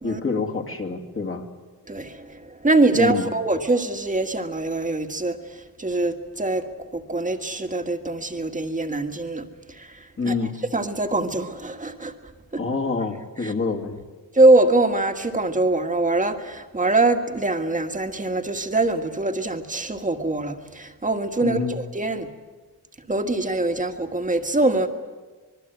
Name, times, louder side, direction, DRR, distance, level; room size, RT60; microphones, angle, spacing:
voice 1, 0.0-1.4 2.9-3.3 10.2-10.6 12.6-14.0 21.4-21.8, left 4 dB, 35° left, 2.5 m, -26 dB
voice 2, 1.9-10.3 10.7-12.1 12.5-12.6 13.4-13.5 14.3-22.3 23.1-24.9, right 2 dB, 20° right, 1.7 m, -23 dB
25.5 x 22.0 x 8.0 m
wide cardioid pair, 140°, 38 cm